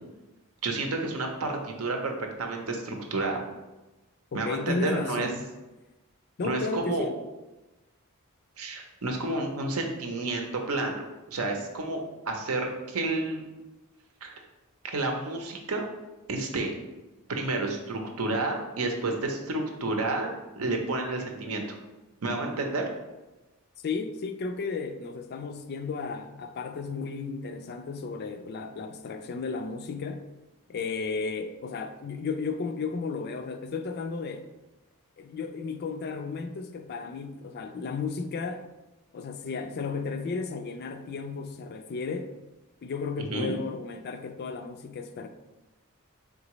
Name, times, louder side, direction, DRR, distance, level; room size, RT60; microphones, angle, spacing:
voice 1, 0.6-2.1 2.4-3.4 4.3-5.3 6.4-7.1 8.6-11.0 11.3-12.0 12.3-13.4 14.2-14.4 14.8-15.8 16.3-16.7 17.3-21.6 22.2-22.9 43.3-43.6, right 2 dB, 70° right, 0.7 m, -30 dB
voice 2, 4.3-5.5 6.4-7.2 23.8-30.3 30.7-34.5 35.2-38.7 39.1-42.3 42.8-45.3, left 4 dB, 50° left, 0.3 m, -34 dB
3.9 x 3.6 x 3.0 m
head